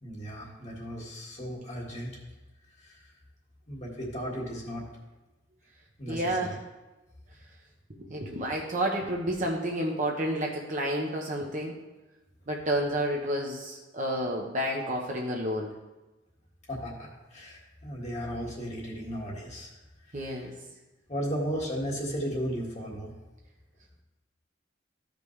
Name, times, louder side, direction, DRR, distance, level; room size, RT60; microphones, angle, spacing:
voice 1, 0.0-2.1 2.8-3.0 3.7-4.8 6.0-6.6 16.7-19.7 20.1-20.3 21.1-23.1, equal, 35° left, -3 dB, 1.7 m, -35 dB
voice 2, 6.1-6.6 8.0-11.7 12.5-15.7 20.1-20.5, right 1 dB, 40° right, -1 dB, 0.9 m, -30 dB
14.5 x 5.2 x 3.2 m, 1.1 s
head